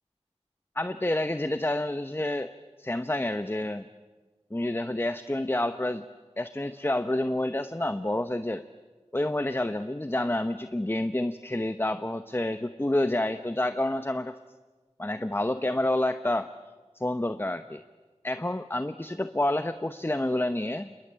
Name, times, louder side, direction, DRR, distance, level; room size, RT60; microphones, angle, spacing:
voice 1, 0.8-2.5 2.8-3.9 4.5-6.0 6.4-8.6 9.1-14.4 15.0-16.5 16.9-17.8 18.2-20.9, left 1 dB, 20° left, 10 dB, 0.9 m, -28 dB
27.5 x 21.5 x 8.8 m, 1.3 s
wide cardioid pair, 45°, 12 cm